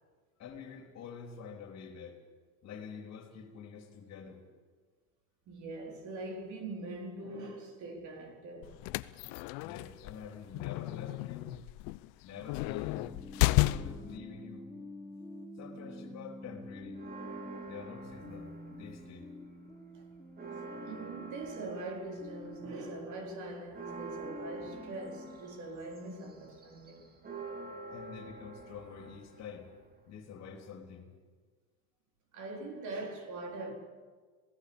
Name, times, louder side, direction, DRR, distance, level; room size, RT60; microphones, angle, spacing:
voice 1, 0.4-2.2 2.6-4.4 9.6-11.6 12.2-13.2 13.4-14.7 15.6-17.1 17.7-19.3 27.9-29.7 30.1-31.1, left 6 dB, 40° left, 3.8 m, -47 dB
voice 2, 5.5-8.8 19.9-20.0 20.8-27.2 32.3-33.7, right 2 dB, 45° right, 4.1 m, -42 dB
sound 1, 8.6-14.2, left 20 dB, 60° left, 0.8 m, -32 dB
sound 2, 12.9-25.4, left 1 dB, 10° left, 1.4 m, -48 dB
Church bell, 16.9-19.3 19.7-19.8 20.1-30.2, right 4 dB, 25° right, 2.8 m, -48 dB
27.0 x 17.5 x 7.2 m
supercardioid pair, 130°, 39 cm